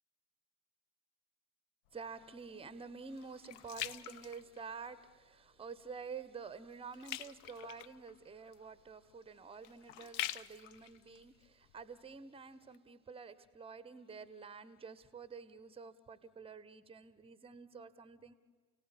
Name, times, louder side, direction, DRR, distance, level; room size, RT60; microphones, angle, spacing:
sound 1, 1.9-5.1 5.6-5.9 6.2-12.2 12.7-12.8, left 13 dB, 40° left, 0.6 m, -46 dB
voice 1, 1.9-18.3, right 5 dB, 10° right, 16 dB, 1.2 m, -49 dB
30.0 x 17.5 x 8.9 m, 1.5 s
figure-of-eight pair, 75°, 45 cm